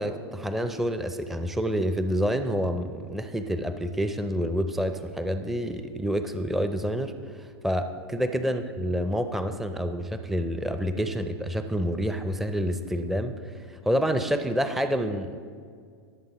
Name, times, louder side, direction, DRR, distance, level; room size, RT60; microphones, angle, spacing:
voice 1, 0.0-15.4, equal, ahead, 8 dB, 0.5 m, -28 dB
18.5 x 7.3 x 3.0 m, 2.1 s
hypercardioid pair, 105°, 13 cm